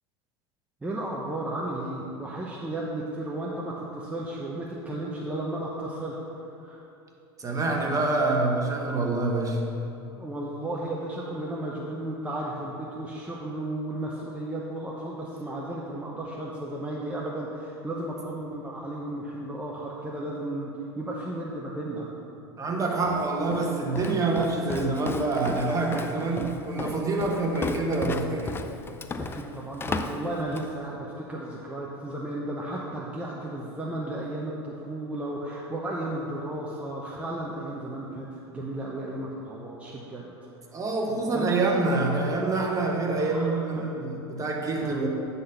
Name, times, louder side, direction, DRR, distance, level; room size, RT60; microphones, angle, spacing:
voice 1, 0.8-6.8 10.1-22.1 26.1-26.5 27.2-27.4 29.2-40.4 40.7-40.8 41.3-41.5 43.2-43.9 44.8-45.0, right 1 dB, 10° right, -4 dB, 0.9 m, -34 dB
voice 2, 7.4-9.7 22.6-28.6 40.7-45.1, right 3 dB, 25° right, 0 dB, 1.3 m, -26 dB
Walk footsteps, 23.0-30.8, left 4 dB, 20° left, 0.4 m, -35 dB
9.8 x 4.1 x 5.7 m, 2.9 s
hypercardioid pair, 95°, 13 cm